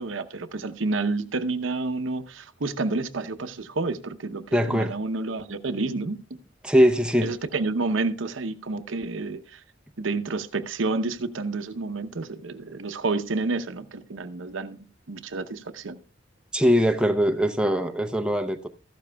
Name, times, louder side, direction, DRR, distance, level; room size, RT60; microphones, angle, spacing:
voice 1, 0.0-6.4 7.2-9.6 10.0-16.0, right 3 dB, 85° right, 0.8 m, -29 dB
voice 2, 4.5-4.9 6.6-7.3 16.5-18.7, equal, 5° right, 0.6 m, -21 dB
14.5 x 12.0 x 2.3 m
head